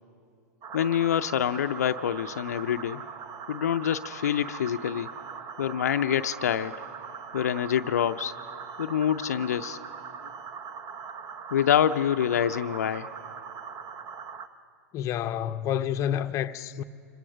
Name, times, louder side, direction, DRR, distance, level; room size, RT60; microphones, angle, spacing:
sound 1, 0.6-14.5, right 6 dB, 35° right, 1.1 m, -41 dB
voice 1, 0.7-3.0 3.5-5.1 5.6-6.8 7.3-8.3 8.8-9.8 11.5-13.1, left 9 dB, 70° left, 0.5 m, -26 dB
voice 2, 14.9-16.8, left 10 dB, 35° left, 0.7 m, -29 dB
25.5 x 22.0 x 6.3 m
hypercardioid pair, 95°, 9 cm